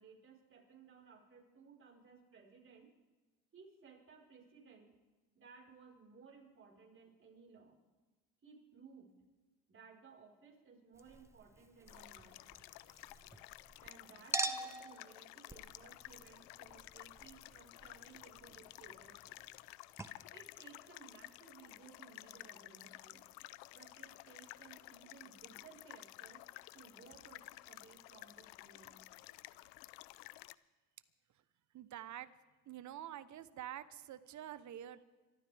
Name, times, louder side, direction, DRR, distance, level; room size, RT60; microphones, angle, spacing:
voice 1, 0.0-2.9 3.5-4.9 5.3-7.8 8.4-9.1 9.7-12.5 13.8-19.4 20.3-23.2 23.7-26.4 26.7-29.0, right 5 dB, 35° right, -1 dB, 4.9 m, -60 dB
Chink clink, 11.0-13.9 14.3-19.7 20.0-20.1, right 2 dB, 5° right, 0.9 m, -46 dB
sound 1, 11.9-30.5, left 19 dB, 80° left, 0.6 m, -54 dB
voice 2, 31.7-32.3 32.7-35.0, right 11 dB, 50° right, 14 dB, 1.1 m, -47 dB
26.0 x 13.5 x 3.5 m, 1.2 s
supercardioid pair, 90°, 37 cm